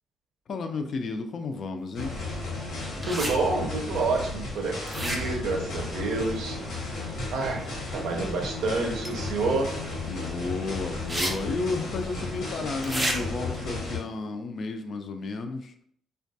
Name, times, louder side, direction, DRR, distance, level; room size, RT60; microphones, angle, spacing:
voice 1, 0.5-2.2 7.5-7.6 10.0-15.7, left 3 dB, 50° left, 6 dB, 0.3 m, -32 dB
sound 1, 1.9-14.0, left 3 dB, 85° left, 1.0 m, -34 dB
sound 2, 3.0-3.3 4.9-5.5 9.0-9.1 11.1-11.3 11.6-11.7 12.8-13.2, right 1 dB, 15° right, 0.5 m, -29 dB
voice 2, 3.1-6.6 7.3-9.7, right 3 dB, 85° right, 2 dB, 0.5 m, -28 dB
2.3 x 2.2 x 2.6 m, 0.64 s
cardioid pair, 110°, 0 cm